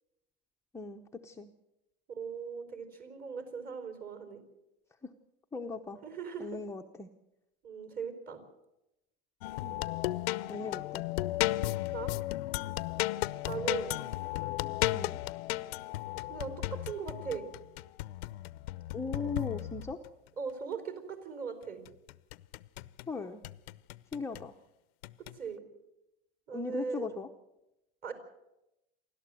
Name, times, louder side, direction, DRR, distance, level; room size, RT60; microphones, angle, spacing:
voice 1, 0.7-1.5 5.0-5.1 5.5-6.0 6.4-7.1 9.6-9.8 10.5-11.0 14.9-15.2 18.9-20.0 23.1-23.4 24.1-24.5 26.5-27.3, left 4 dB, 10° left, 2 dB, 0.8 m, -38 dB
voice 2, 2.1-4.4 6.0-6.6 7.6-8.4 11.9-12.2 13.5-14.0 16.3-17.5 20.4-21.8 25.2-25.6 26.5-27.2 28.0-28.1, right 5 dB, 30° right, 8 dB, 4.4 m, -39 dB
sound 1, 9.4-20.1 21.8-23.1 23.4-24.5 25.0-25.3, left 17 dB, 80° left, 0.7 m, -35 dB
28.0 x 12.5 x 7.7 m, 0.91 s
supercardioid pair, 140°, 31 cm